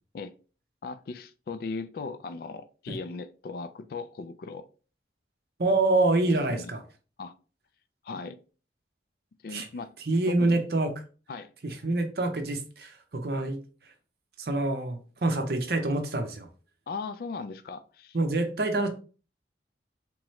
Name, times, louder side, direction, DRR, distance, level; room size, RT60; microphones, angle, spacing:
voice 1, 0.8-4.7 6.2-6.7 7.2-7.3 8.0-8.4 9.4-9.9 10.3-10.6 11.3-11.5 16.9-18.2, left 4 dB, 55° left, 0.3 m, -38 dB
voice 2, 5.6-6.8 9.5-9.7 10.1-10.9 11.6-13.6 14.4-16.5 18.1-18.9, right 2 dB, 60° right, 0.7 m, -26 dB
3.5 x 2.9 x 3.1 m
head